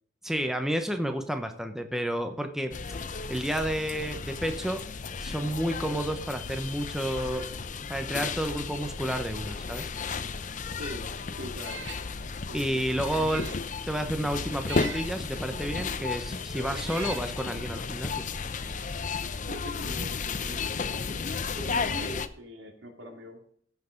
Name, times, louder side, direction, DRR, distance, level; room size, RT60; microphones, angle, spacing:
voice 1, 0.2-2.7 3.3-4.8 5.2-7.5 7.9-9.9 12.5-13.4 13.9-18.3, right 1 dB, ahead, 6 dB, 0.8 m, -30 dB
sound 1, 2.7-22.3, left 4 dB, 40° left, 0.6 m, -34 dB
voice 2, 11.3-11.8 12.5-12.8 13.1-13.4 16.5-16.9 19.5-21.3 21.5-23.4, equal, 90° right, 2 dB, 2.8 m, -42 dB
Meow, 11.5-12.1 12.5-12.6 13.1-13.6 14.6-15.1 16.0-16.1 16.7-17.3, right 7 dB, 75° right, 1.0 m, -41 dB
15.5 x 5.9 x 5.2 m, 0.63 s
head